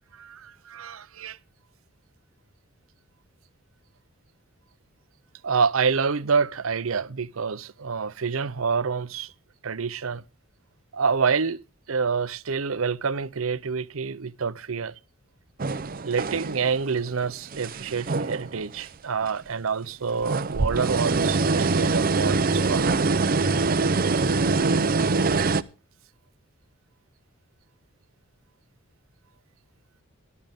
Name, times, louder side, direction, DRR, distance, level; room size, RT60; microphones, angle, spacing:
voice 1, 0.1-1.4 5.4-9.3 9.6-10.2 10.9-11.6 11.9-15.0 16.0-22.9, right 5 dB, 80° right, 0.7 m, -27 dB
sound 1, 15.6-16.8 17.2-18.9 19.2-19.3 20.1-25.6, right 3 dB, 45° right, 0.6 m, -24 dB
18.0 x 12.0 x 3.6 m
head